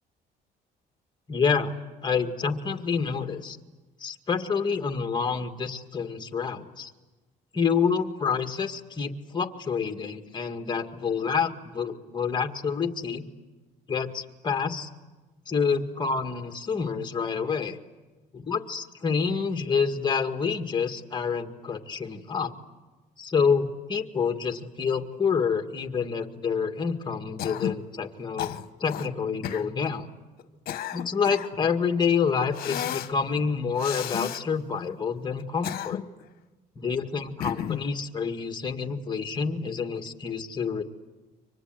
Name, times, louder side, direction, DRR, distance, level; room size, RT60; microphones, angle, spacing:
voice 1, 1.3-1.7 2.0-3.6 4.0-6.9 7.5-13.3 13.9-14.9 15.5-17.8 18.3-22.5 23.2-28.5 28.8-30.1 30.9-36.0 36.8-40.8, left 5 dB, 25° left, 6 dB, 2.1 m, -28 dB
Cough, 27.4-27.8 28.4-29.1 29.4-29.7 30.4-31.6 32.5-33.1 33.8-34.4 35.4-36.2 37.4-37.9, left 11 dB, 60° left, 1.2 m, -33 dB
29.5 x 25.0 x 7.9 m, 1.2 s
cardioid pair, 110°, 17 cm